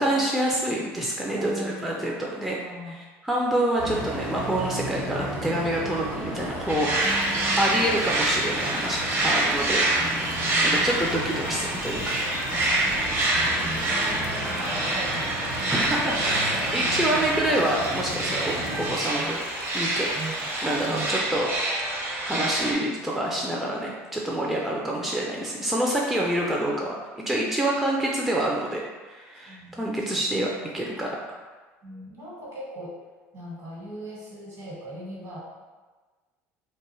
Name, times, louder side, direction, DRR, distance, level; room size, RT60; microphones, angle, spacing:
voice 1, 0.0-2.6 2.9-7.1 7.6-10.1 10.6-12.0 15.7-19.4 19.7-20.1 20.6-31.1, right 1 dB, 5° right, -3 dB, 0.4 m, -27 dB
voice 2, 1.3-3.0 7.0-7.9 9.8-11.1 11.4-11.8 12.5-17.5 19.2-19.4 20.1-20.5 20.8-21.1 24.5-24.6 29.5-30.2 30.7-30.8 31.8-33.0 33.3-35.4, right 1 dB, 50° right, -5 dB, 1.3 m, -39 dB
sound 1, 3.8-18.9, right 1 dB, 80° right, 1.0 m, -34 dB
sound 2, 6.7-22.7, right 2 dB, 35° right, 0.7 m, -27 dB
sound 3, 6.9-21.2, left 3 dB, 85° left, 0.4 m, -42 dB
2.4 x 2.3 x 3.0 m, 1.3 s
hypercardioid pair, 75°, 7 cm